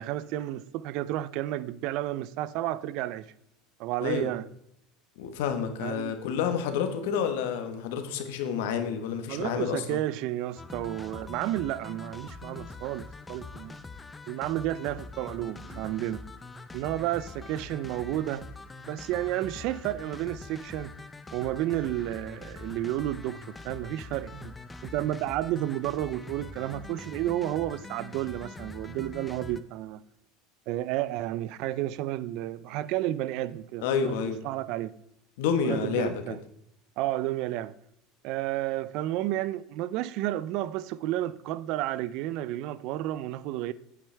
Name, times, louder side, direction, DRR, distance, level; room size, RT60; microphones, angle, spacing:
voice 1, 0.0-3.3 3.8-4.4 5.8-6.2 9.3-13.8 14.3-16.2 16.7-18.5 18.9-20.9 21.3-24.5 24.8-30.0 30.7-34.9 35.6-36.4 37.0-37.7 38.2-43.7, right 14 dB, 60° right, 0.4 m, -31 dB
voice 2, 5.2-10.0 33.8-34.4 35.4-36.2, left 7 dB, 80° left, 1.2 m, -29 dB
sound 1, 10.6-29.6, left 3 dB, 15° left, 0.5 m, -44 dB
8.7 x 8.5 x 3.4 m
supercardioid pair, 135°, 0 cm